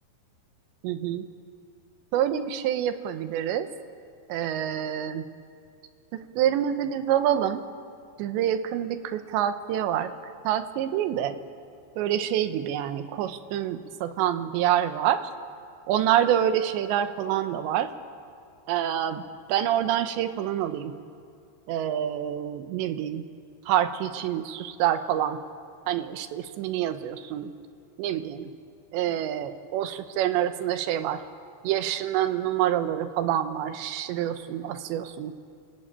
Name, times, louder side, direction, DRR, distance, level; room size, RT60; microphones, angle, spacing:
voice 1, 0.8-1.3 2.1-3.7 4.3-5.3 6.1-7.6 8.2-10.1 10.4-11.4 12.0-15.3 15.9-17.9 18.7-20.9 21.7-23.3 23.7-25.4 25.9-27.5 28.0-28.5 28.9-31.2 31.6-35.3, right 11 dB, 80° right, 10 dB, 3.2 m, -27 dB
28.5 x 20.0 x 8.8 m, 2.3 s
omnidirectional pair, 5.3 m